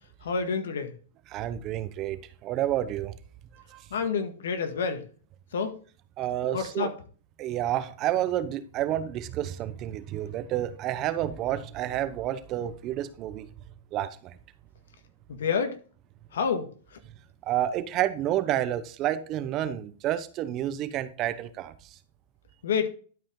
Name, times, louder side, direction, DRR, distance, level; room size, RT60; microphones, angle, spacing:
voice 1, 0.2-0.9 3.9-5.1 5.5-5.8 6.5-6.9 15.3-15.8 16.3-17.0 22.6-22.9, left 6 dB, 80° left, 1.7 m, -28 dB
voice 2, 1.3-3.1 3.7-3.8 6.2-6.9 7.4-13.5 13.9-14.4 17.5-21.7, right 12 dB, 30° right, 0.8 m, -29 dB
12.0 x 4.9 x 3.8 m
hypercardioid pair, 145°, 0 cm